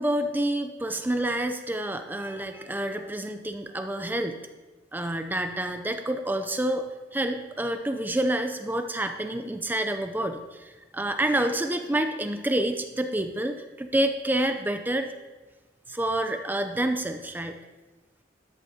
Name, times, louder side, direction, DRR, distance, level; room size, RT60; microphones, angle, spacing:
voice 1, 0.0-4.4 4.9-6.8 7.1-15.1 15.9-17.6, right 1 dB, 10° right, 7 dB, 0.5 m, -28 dB
13.0 x 10.5 x 2.8 m, 1.2 s
head